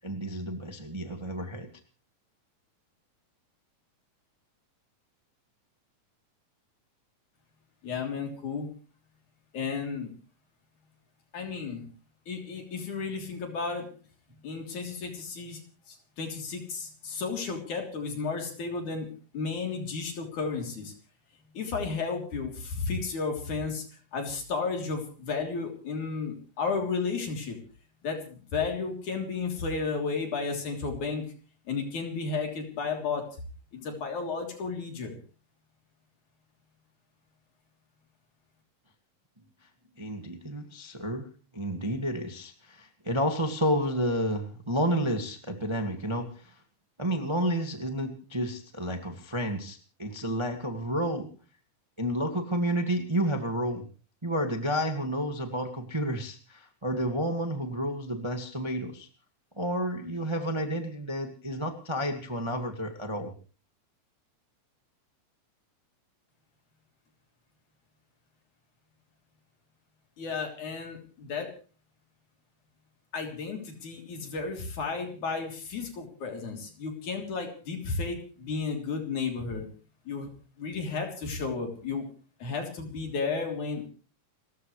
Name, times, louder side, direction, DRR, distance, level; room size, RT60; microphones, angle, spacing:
voice 1, 0.0-1.7 40.0-41.3 41.5-46.5 47.0-51.3 52.0-53.8 54.2-59.1 59.6-63.3, equal, 15° right, 4 dB, 1.3 m, -30 dB
voice 2, 7.8-8.7 9.5-10.1 11.3-11.9 12.3-13.9 14.4-15.6 15.9-19.1 19.3-20.9 21.5-23.8 24.1-27.6 28.0-31.2 31.7-33.3 33.7-35.2 70.2-71.5 73.1-79.7 80.1-80.3 80.6-82.1 82.4-83.9, left 4 dB, 65° left, 2 dB, 4.8 m, -33 dB
30.0 x 14.5 x 3.3 m, 0.39 s
omnidirectional pair, 3.8 m